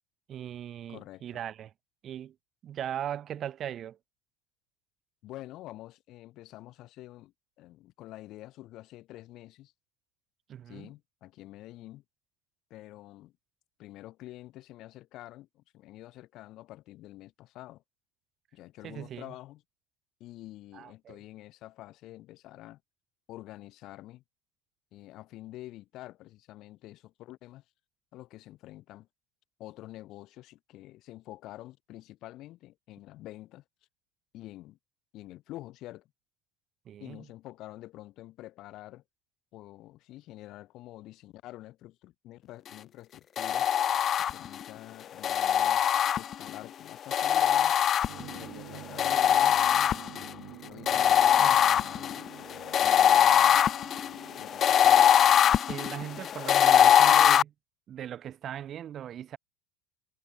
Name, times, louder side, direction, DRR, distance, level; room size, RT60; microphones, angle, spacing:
voice 1, 0.3-1.7 2.0-2.3 2.6-4.0 10.5-10.9 18.8-19.3 20.7-21.2 36.9-37.3 50.9-51.6 52.1-52.2 55.7-57.5 57.9-59.4, right 10 dB, 35° right, 0.9 m, -39 dB
voice 2, 0.9-1.2 5.2-9.7 10.7-12.0 12.7-13.3 13.8-17.8 18.5-19.6 20.2-22.8 23.3-24.2 24.9-27.6 28.1-29.1 29.6-33.6 34.3-34.8 35.1-36.1 37.0-39.0 39.5-43.7 44.3-45.8 46.2-47.8 48.2-49.6 49.9-52.3 52.8-53.7 54.4-55.1, left 16 dB, 50° left, 3.6 m, -47 dB
sound 1, 43.4-44.6 45.2-46.6 47.1-48.4 49.0-50.3 50.9-57.4, left 9 dB, 30° left, 0.3 m, -22 dB
sound 2, 48.1-56.3, right 22 dB, 60° right, 2.7 m, -49 dB
cardioid pair, 155°, 0 cm